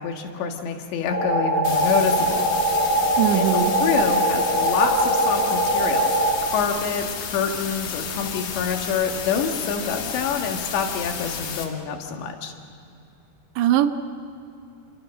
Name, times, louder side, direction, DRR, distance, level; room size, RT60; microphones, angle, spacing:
voice 1, 0.0-2.5 3.3-6.1 6.4-12.5, left 6 dB, 85° left, 3 dB, 4.1 m, -26 dB
sound 1, 1.1-6.4, right 1 dB, 5° left, 2.3 m, -22 dB
sound 2, 1.6-11.6, left 6 dB, 60° left, 3.3 m, -32 dB
voice 2, 3.2-3.8 13.6-13.9, right 11 dB, 85° right, 9 dB, 3.3 m, -20 dB
28.5 x 25.0 x 6.5 m, 2.6 s
omnidirectional pair, 5.0 m